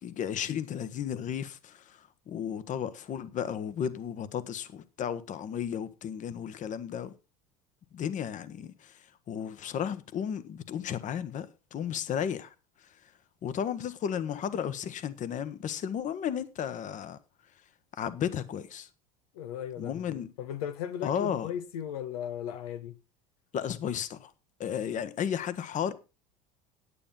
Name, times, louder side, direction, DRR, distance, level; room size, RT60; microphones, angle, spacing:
voice 1, 0.0-7.1 7.9-9.0 9.3-12.5 13.4-17.2 17.9-18.9 19.8-20.3 21.0-21.5 23.5-24.3 24.6-25.9, left 8 dB, 45° left, 1.3 m, -34 dB
voice 2, 19.3-23.0, left 9 dB, 85° left, 1.2 m, -37 dB
10.0 x 8.8 x 5.5 m
supercardioid pair, 95°, 18 cm